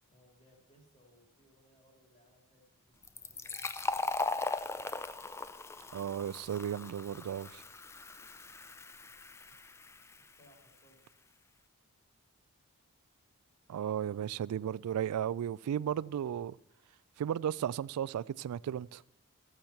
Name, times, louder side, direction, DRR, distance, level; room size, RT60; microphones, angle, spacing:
voice 1, 0.0-3.7 10.2-10.9 13.7-14.6, equal, 30° left, 3.2 m, -66 dB
Fill (with liquid), 3.0-10.4, left 3 dB, 10° left, 0.3 m, -39 dB
voice 2, 5.9-7.6 13.7-16.6 17.2-19.0, right 9 dB, 90° right, 0.3 m, -35 dB
15.0 x 7.2 x 5.9 m
head